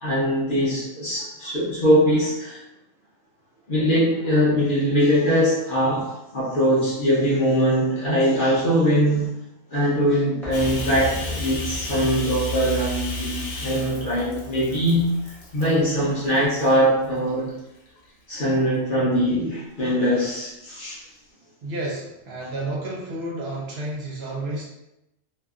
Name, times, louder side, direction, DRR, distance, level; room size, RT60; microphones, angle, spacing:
voice 1, 0.0-2.6 3.7-9.3 9.7-17.5 18.3-21.1, equal, 55° left, -7 dB, 0.6 m, -22 dB
sound 1, 10.4-16.1 16.4-16.5, equal, ahead, 0.5 m, -33 dB
Bathtub (filling or washing), 10.5-15.9 16.3-16.7 17.3-18.1, left 2 dB, 90° left, 1.1 m, -36 dB
voice 2, 21.6-24.6, right 2 dB, 60° right, -4 dB, 0.8 m, -31 dB
2.7 x 2.3 x 2.3 m, 0.90 s
omnidirectional pair, 1.3 m